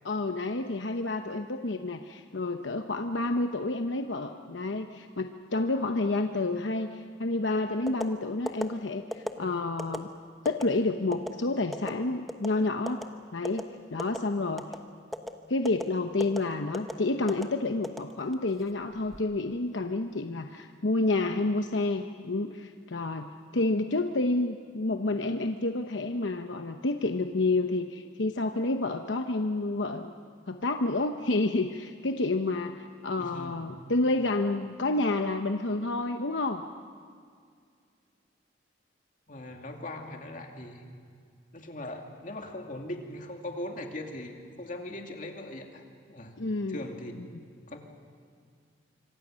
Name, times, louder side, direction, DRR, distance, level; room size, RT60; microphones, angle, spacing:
voice 1, 0.0-10.1 10.4-13.1 13.3-13.6 13.9-14.7 15.5-30.1 30.5-36.6 46.4-46.8, left 2 dB, 75° left, 6 dB, 0.9 m, -29 dB
sound 1, 7.9-8.1 8.5-8.6 9.1-9.3 9.8-10.0 10.4-10.6 11.1-11.3 11.7-11.9 12.3-12.5 12.9-13.0 13.4-13.6 14.0-14.2 14.6-14.8 15.1-15.3 15.6-15.8 16.2-16.4 16.7-16.9 17.3-17.4 17.8-18.5 18.9-19.2, equal, ahead, 1.0 m, -34 dB
voice 2, 33.2-33.7 39.3-40.9 41.5-46.4 46.7-47.1 47.7-47.8, left 1 dB, 45° left, 2 dB, 2.5 m, -40 dB
26.0 x 25.0 x 6.4 m, 2.1 s
head